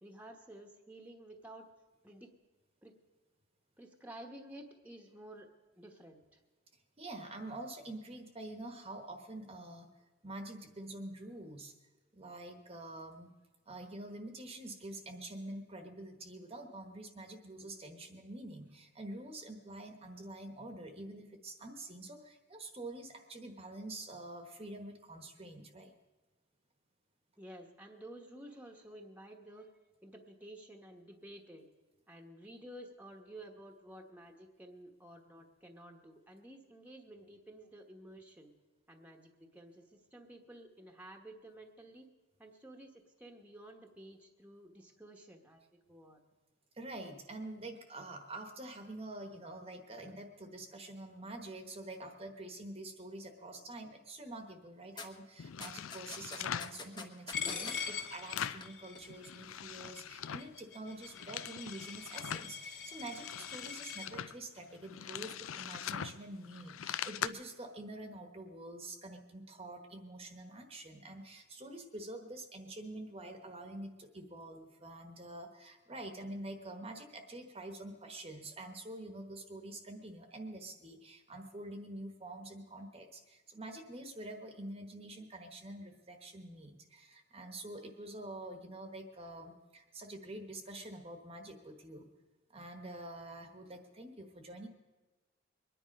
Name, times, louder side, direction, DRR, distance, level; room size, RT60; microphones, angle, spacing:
voice 1, 0.0-1.7 2.0-2.3 2.8-3.0 3.8-5.5 5.8-6.4 18.6-18.7 27.4-29.7 30.0-31.7 32.1-38.5 38.9-42.1 42.4-45.6 45.9-46.2 57.5-57.8, right 1 dB, 5° right, 3 dB, 1.1 m, -52 dB
voice 2, 7.0-9.9 10.2-11.7 12.1-13.3 13.7-25.9 46.7-92.1 92.5-94.7, right 1 dB, 30° right, 5 dB, 1.1 m, -47 dB
sound 1, 55.0-55.1 55.6-57.8 58.4-58.7 59.0-59.1, left 3 dB, 20° left, 1.0 m, -45 dB
sound 2, 55.4-56.8 57.3-58.7 59.0-60.5 60.9-62.5 63.0-67.3, left 9 dB, 80° left, 0.5 m, -42 dB
Coin (dropping), 57.3-64.1, left 7 dB, 60° left, 2.2 m, -43 dB
23.0 x 10.0 x 5.3 m, 1.2 s
head